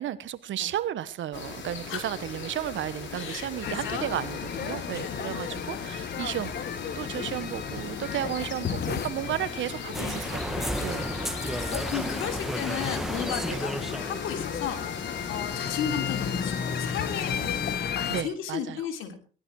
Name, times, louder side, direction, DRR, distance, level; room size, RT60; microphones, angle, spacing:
voice 1, 0.0-6.7 6.9-11.1 13.5-13.6 18.1-18.9, right 11 dB, 70° right, 16 dB, 1.2 m, -33 dB
sound 1, 1.3-17.8, left 5 dB, 70° left, 6.5 m, -39 dB
voice 2, 3.1-4.1 5.0-5.3 10.0-10.1 10.8-11.2 11.4-17.5 17.8-19.1, left 8 dB, 90° left, 5 dB, 3.4 m, -35 dB
sound 2, 3.6-18.2, left 8 dB, 55° left, 1.3 m, -34 dB
sound 3, 9.9-15.0, equal, ahead, 1.8 m, -33 dB
19.0 x 12.5 x 4.8 m, 0.40 s
cardioid pair, 90°, 20 cm